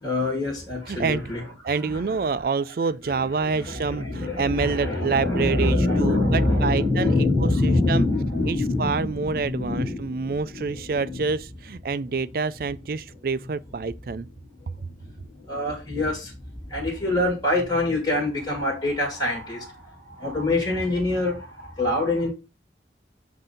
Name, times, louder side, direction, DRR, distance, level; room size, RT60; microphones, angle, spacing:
voice 1, 0.0-2.3 3.4-11.2 15.3-16.4 16.7-22.3, left 2 dB, 25° left, 1.8 m, -25 dB
voice 2, 0.9-1.3 1.6-8.1 8.5-14.3, right 4 dB, 55° right, 0.4 m, -27 dB
7.6 x 2.8 x 5.1 m
head